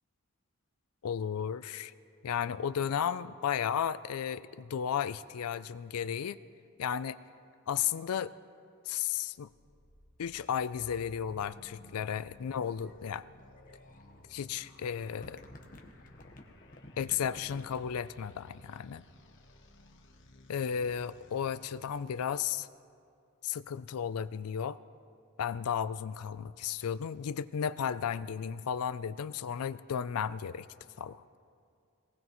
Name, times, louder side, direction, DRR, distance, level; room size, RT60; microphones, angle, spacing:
voice 1, 1.0-1.9 2.2-6.4 6.8-7.2 7.7-8.3 8.9-9.5 10.2-13.3 14.3-15.4 17.0-19.0 20.5-22.7 23.4-24.8 25.4-30.7 31.0-31.2, left 8 dB, 85° left, 14 dB, 0.4 m, -34 dB
sound 1, 9.3-22.5, left 1 dB, 55° left, 1.2 m, -57 dB
sound 2, 12.1-18.1, left 1 dB, 40° left, 1.1 m, -53 dB
22.5 x 19.0 x 3.1 m, 2.3 s
head